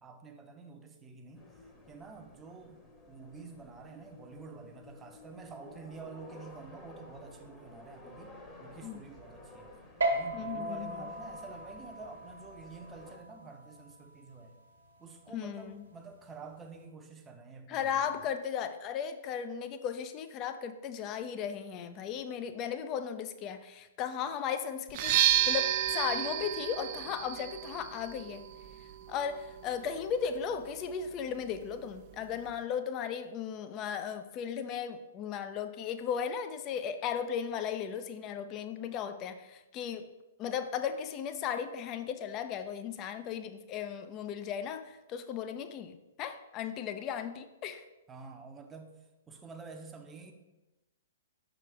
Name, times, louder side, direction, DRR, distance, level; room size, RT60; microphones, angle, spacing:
voice 1, 0.0-1.4 1.9-8.3 8.6-9.8 10.1-14.6 15.0-18.2 48.1-48.9 49.3-50.3, right 4 dB, 15° right, 4 dB, 0.7 m, -49 dB
sound 1, 1.3-13.2, left 2 dB, 15° left, 1.0 m, -53 dB
sound 2, 10.0-16.8, right 1 dB, 75° right, 1.0 m, -38 dB
voice 2, 10.3-11.0 15.3-15.8 17.7-25.1 25.5-28.5 29.1-40.0 40.4-47.8, left 8 dB, 30° left, 9 dB, 0.5 m, -36 dB
sound 3, 24.9-32.6, right 12 dB, 45° right, 0.3 m, -33 dB
5.8 x 4.9 x 3.3 m, 1.0 s
figure-of-eight pair, 115°, 0 cm